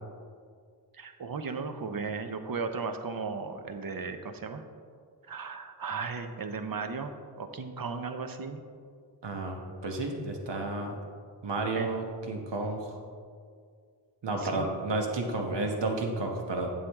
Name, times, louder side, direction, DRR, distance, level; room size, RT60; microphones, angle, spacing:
voice 1, 0.9-4.6 5.3-8.6 11.8-11.9 14.4-14.7, right 4 dB, 55° right, 7 dB, 0.8 m, -36 dB
voice 2, 9.2-10.9 11.4-12.9 14.2-16.7, right 2 dB, 80° right, 2 dB, 1.2 m, -32 dB
8.3 x 7.2 x 3.6 m, 2.1 s
cardioid pair, 45°, 42 cm